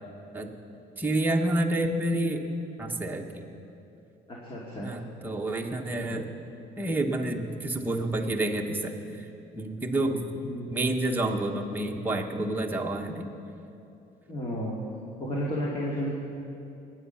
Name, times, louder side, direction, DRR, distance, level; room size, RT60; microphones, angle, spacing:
voice 1, 1.0-2.5 2.8-3.4 4.8-6.3 6.8-9.3 9.5-10.2 10.7-13.3, right 1 dB, 10° right, 1 dB, 1.2 m, -29 dB
voice 2, 4.3-4.9 6.1-6.2 10.4-10.7 14.3-14.8 15.2-16.1, equal, 30° left, -4 dB, 2.4 m, -32 dB
21.0 x 8.8 x 5.7 m, 2.8 s
cardioid pair, 110°, 17 cm